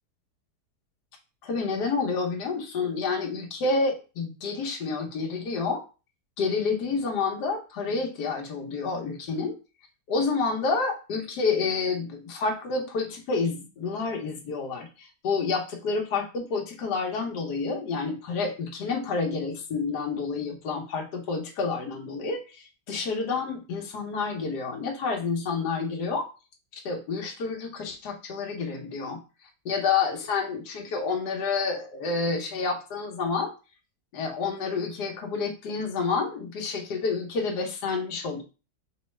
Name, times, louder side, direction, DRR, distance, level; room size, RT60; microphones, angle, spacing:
voice 1, 1.4-5.8 6.4-9.5 10.1-26.3 26.7-29.2 29.6-33.5 34.1-38.4, left 4 dB, 75° left, 3 dB, 1.5 m, -29 dB
5.3 x 3.1 x 3.2 m, 0.33 s
omnidirectional pair, 1.7 m